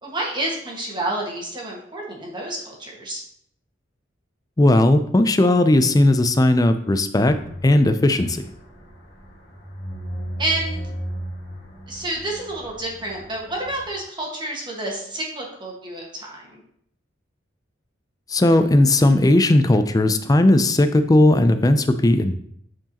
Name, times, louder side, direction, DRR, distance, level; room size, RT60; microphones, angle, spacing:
voice 1, 0.0-3.2 10.4-10.9 11.9-16.6, right 1 dB, 25° right, -3 dB, 1.6 m, -29 dB
voice 2, 4.6-7.4 7.6-8.5 18.3-22.3, left 1 dB, 20° left, 9 dB, 0.4 m, -17 dB
sound 1, 7.3-13.9, right 1 dB, 60° left, 1.9 m, -35 dB
8.7 x 4.6 x 2.9 m, 0.67 s
head